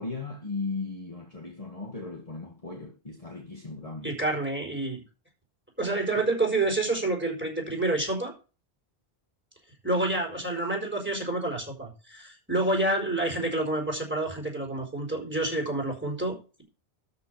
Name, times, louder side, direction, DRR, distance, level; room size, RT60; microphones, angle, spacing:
voice 1, 0.0-4.1 6.1-6.2, left 3 dB, 35° left, 1.8 m, -37 dB
voice 2, 4.0-5.0 5.8-8.3 9.8-16.6, right 2 dB, 10° right, 4.6 m, -28 dB
12.5 x 6.2 x 4.9 m
omnidirectional pair, 1.1 m